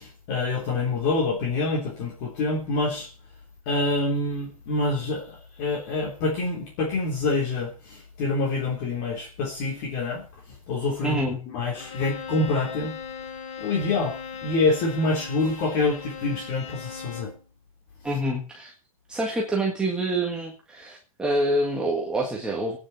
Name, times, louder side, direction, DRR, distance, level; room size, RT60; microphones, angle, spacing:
voice 1, 0.0-3.1 3.6-10.2 10.7-11.2 11.5-12.9 13.6-14.2 14.4-17.3, left 3 dB, 35° left, -1 dB, 3.5 m, -26 dB
voice 2, 11.0-11.4 18.0-18.7 19.1-22.8, right 1 dB, 5° right, -2 dB, 1.7 m, -26 dB
Bowed string instrument, 11.7-17.4, left 6 dB, 55° left, 4.8 m, -38 dB
19.0 x 9.7 x 5.8 m, 0.37 s
hypercardioid pair, 165°, 18 cm